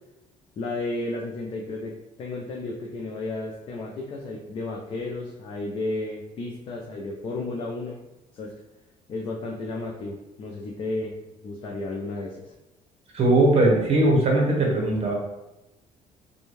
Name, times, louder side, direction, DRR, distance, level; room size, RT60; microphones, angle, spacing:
voice 1, 0.6-8.0 8.3-8.5 9.1-11.2 11.4-12.5, left 2 dB, 40° left, -2 dB, 0.4 m, -33 dB
voice 2, 13.1-15.1, right 2 dB, 45° right, -1 dB, 0.8 m, -19 dB
2.5 x 2.2 x 3.1 m, 0.97 s
cardioid pair, 120°, 14 cm